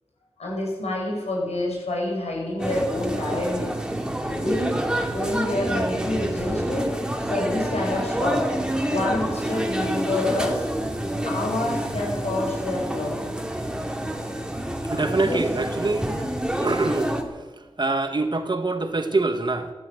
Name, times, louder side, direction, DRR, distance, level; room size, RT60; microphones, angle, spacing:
voice 1, 0.4-3.7 4.3-4.8 5.1-6.9 7.2-8.4 8.8-10.7 11.2-13.2 14.9-15.4, left 2 dB, 90° left, -2 dB, 6.8 m, -27 dB
sound 1, 2.6-17.2, right 1 dB, 5° right, 2.4 m, -28 dB
voice 2, 14.9-16.0 16.6-17.1 17.8-19.7, right 3 dB, 45° right, 7 dB, 1.9 m, -24 dB
14.5 x 12.0 x 8.1 m, 1.3 s
wide cardioid pair, 65°, 11 cm